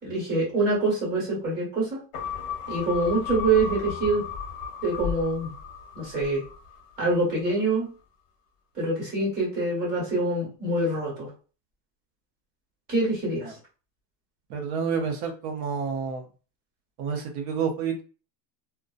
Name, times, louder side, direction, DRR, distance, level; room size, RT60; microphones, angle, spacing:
voice 1, 0.0-2.0 2.7-4.2 4.8-5.5 5.9-6.4 7.0-7.9 8.7-11.3 12.9-13.5, right 2 dB, 20° right, -5 dB, 1.3 m, -25 dB
sound 1, 2.1-6.8 7.2-7.3, left 6 dB, 55° left, 0.9 m, -34 dB
voice 2, 14.5-16.3 17.0-18.0, right 6 dB, 40° right, 3 dB, 0.6 m, -29 dB
2.6 x 2.2 x 2.3 m, 0.36 s
cardioid pair, 170°, 46 cm